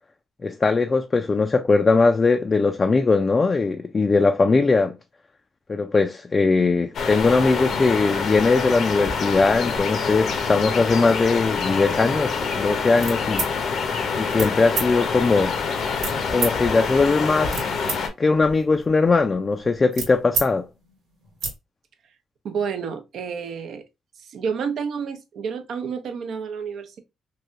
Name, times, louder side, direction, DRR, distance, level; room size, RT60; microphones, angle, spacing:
voice 1, 0.4-5.0 5.7-13.5 14.2-15.5 16.3-17.7 18.2-20.7, left 3 dB, 30° left, 0.3 m, -20 dB
sound 1, 6.9-18.1, left 5 dB, 65° left, 0.6 m, -26 dB
sound 2, 13.0-13.5 14.3-14.5 14.7-14.9 16.0-16.5 17.2-18.0 18.3-20.5 20.8-20.9 21.2-21.5, right 4 dB, 90° right, 1.2 m, -29 dB
voice 2, 22.4-23.8 24.2-27.0, right 6 dB, 70° right, 0.6 m, -30 dB
3.1 x 2.6 x 2.4 m
cardioid pair, 100°, 0 cm